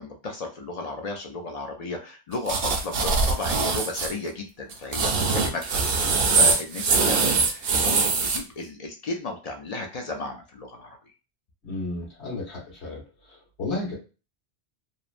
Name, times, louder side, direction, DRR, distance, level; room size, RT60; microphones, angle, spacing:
voice 1, 0.0-11.0, left 3 dB, 55° left, 2 dB, 0.4 m, -34 dB
sound 1, 2.5-4.1 4.7-8.4, right 4 dB, 65° right, 0.8 m, -22 dB
voice 2, 5.2-5.5 11.6-13.0 13.3-13.9, left 2 dB, 85° left, -3 dB, 1.5 m, -33 dB
3.0 x 2.0 x 2.4 m, 0.33 s
omnidirectional pair, 1.1 m